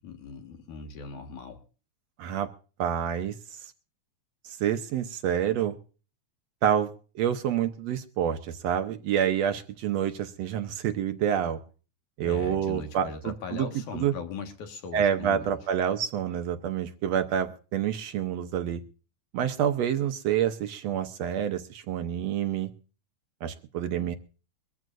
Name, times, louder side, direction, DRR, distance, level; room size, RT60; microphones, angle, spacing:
voice 1, 0.0-1.6 12.2-15.6, left 5 dB, 75° left, 5 dB, 3.1 m, -39 dB
voice 2, 2.8-3.4 4.4-5.8 6.6-11.6 12.2-13.7 13.9-14.1 14.9-18.8 19.3-22.7 23.4-24.2, right 9 dB, 70° right, 7 dB, 1.8 m, -28 dB
23.0 x 14.0 x 2.5 m, 0.36 s
omnidirectional pair, 3.5 m